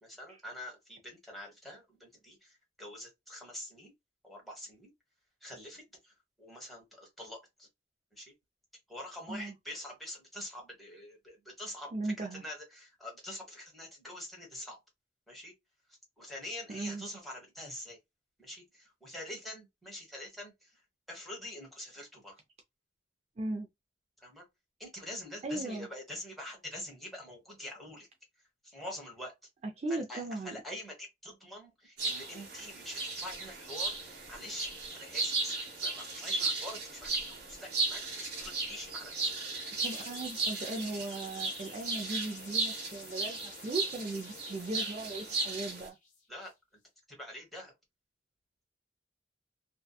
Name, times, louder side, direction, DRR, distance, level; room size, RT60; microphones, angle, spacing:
voice 1, 0.0-3.9 4.2-4.9 5.4-7.7 8.1-8.3 8.9-14.8 15.3-15.5 16.2-18.0 18.4-20.8 21.1-22.3 24.2-24.4 24.8-28.1 28.6-29.3 29.9-34.7 34.9-39.3 46.3-46.5 47.1-47.7, left 1 dB, ahead, 1.2 m, -45 dB
voice 2, 11.9-12.4 16.7-17.0 23.4-23.7 25.4-25.9 29.8-30.6 39.8-46.0, right 2 dB, 35° right, 0.4 m, -37 dB
sound 1, 32.0-45.9, right 3 dB, 60° right, 1.1 m, -36 dB
sound 2, 39.8-46.5, left 5 dB, 45° left, 1.1 m, -51 dB
2.7 x 2.2 x 2.2 m
head